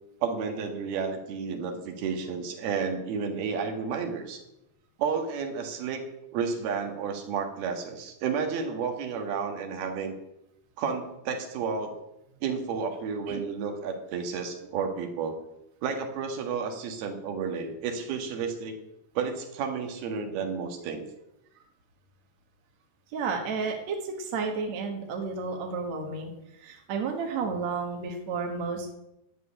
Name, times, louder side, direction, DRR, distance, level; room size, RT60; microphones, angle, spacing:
voice 1, 0.2-4.4 5.0-6.0 6.3-10.1 10.8-12.0 12.4-15.4 15.8-18.8 19.2-21.0, right 6 dB, 75° right, 4 dB, 3.5 m, -31 dB
voice 2, 23.1-26.3 26.6-29.0, right 4 dB, 55° right, 2 dB, 2.4 m, -32 dB
12.5 x 7.7 x 8.8 m, 0.87 s
omnidirectional pair, 4.5 m